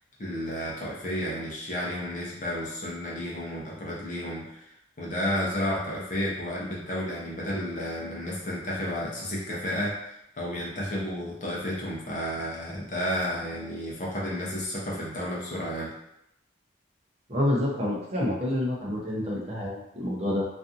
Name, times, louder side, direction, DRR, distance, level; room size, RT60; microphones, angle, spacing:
voice 1, 0.2-4.7 5.0-15.9, equal, 40° left, -5 dB, 0.7 m, -32 dB
voice 2, 17.3-20.4, left 1 dB, 35° right, -4 dB, 0.6 m, -28 dB
2.6 x 2.4 x 2.5 m, 0.83 s
head